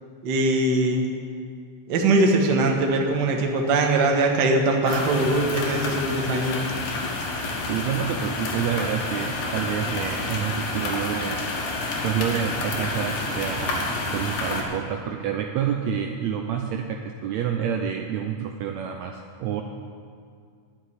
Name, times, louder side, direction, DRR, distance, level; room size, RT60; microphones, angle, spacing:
voice 1, 0.2-1.0 1.9-6.6, right 2 dB, 65° right, 2 dB, 1.0 m, -21 dB
sound 1, 2.6-5.0 5.9-6.0 6.4-6.5 7.0-7.1 7.3-12.1 12.4-12.6 13.2-13.3 13.9-14.0, right 2 dB, 45° right, 2.2 m, -46 dB
sound 2, 4.9-14.6, left 3 dB, 85° left, 3.2 m, -29 dB
voice 2, 7.6-11.4 12.0-19.6, right 8 dB, 90° right, 4 dB, 1.6 m, -28 dB
11.0 x 7.0 x 9.6 m, 2.2 s
omnidirectional pair, 3.9 m